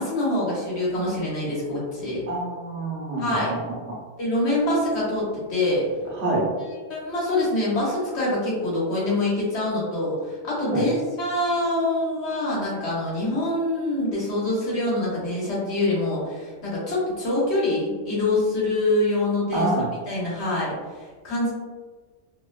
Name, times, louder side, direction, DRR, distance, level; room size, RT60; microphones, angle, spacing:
voice 1, 0.0-2.2 3.2-3.5 4.2-5.8 6.6-19.7 20.1-21.5, left 1 dB, 60° left, -7 dB, 1.2 m, -25 dB
voice 2, 2.3-4.0 6.2-6.5 10.7-10.9 19.5-19.9, right 2 dB, 65° right, -4 dB, 1.0 m, -27 dB
2.8 x 2.1 x 2.2 m, 1.4 s
omnidirectional pair, 1.3 m